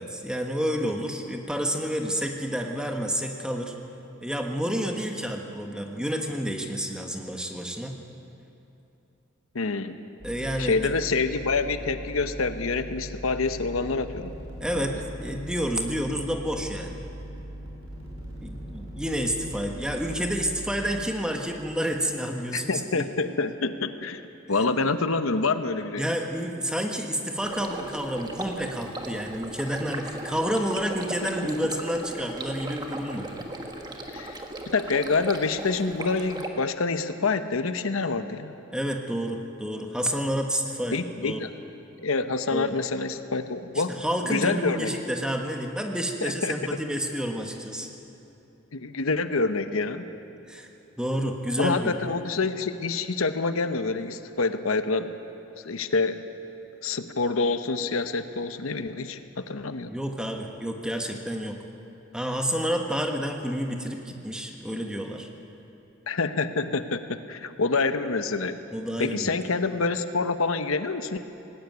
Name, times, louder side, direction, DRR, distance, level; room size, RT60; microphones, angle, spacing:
voice 1, 0.0-3.7 4.2-7.9 10.2-10.8 14.6-17.0 18.4-23.1 26.0-33.3 38.7-41.4 42.5-42.7 43.9-47.9 50.5-50.7 51.0-51.9 59.9-61.6 62.1-65.3 68.7-69.4, equal, 5° right, 3 dB, 1.4 m, -29 dB
voice 2, 9.5-10.0 10.6-14.3 14.7-14.8 22.5-24.2 24.5-26.0 31.4-31.5 34.1-38.5 40.9-41.5 42.0-43.9 44.2-44.9 46.2-46.8 48.7-50.0 51.6-55.1 55.6-56.2 56.8-59.9 66.1-68.6 69.0-71.2, left 3 dB, 85° left, 10 dB, 0.9 m, -27 dB
sound 1, 10.2-21.0, right 1 dB, 85° right, 6.0 m, -40 dB
Stream, 27.4-36.5, right 1 dB, 20° right, 1.5 m, -37 dB
19.0 x 17.0 x 9.4 m, 2.9 s
head